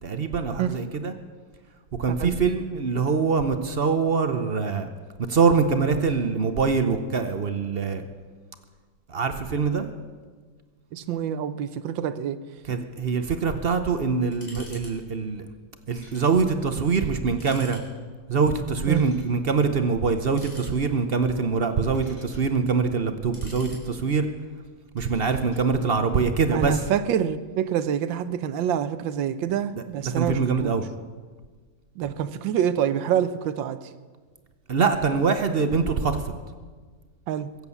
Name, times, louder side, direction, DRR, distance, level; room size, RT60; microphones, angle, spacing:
voice 1, 0.0-1.1 2.0-4.9 5.3-8.0 9.1-9.9 12.7-15.4 15.9-17.8 18.3-24.3 24.9-26.8 29.7-30.9 34.7-36.2, right 5 dB, 50° right, 0.7 m, -24 dB
voice 2, 10.9-12.4 18.9-19.0 26.5-30.7 32.0-33.9 37.3-37.5, right 9 dB, 80° right, 1.4 m, -26 dB
sound 1, 14.3-14.9 15.2-15.3 15.9-16.4 16.7-16.8 17.3-17.8 18.8-19.3 20.2-21.1 21.7-22.4 23.1-24.2 25.0-25.6, left 1 dB, 40° left, 4.1 m, -48 dB
22.5 x 8.2 x 7.1 m
omnidirectional pair, 2.1 m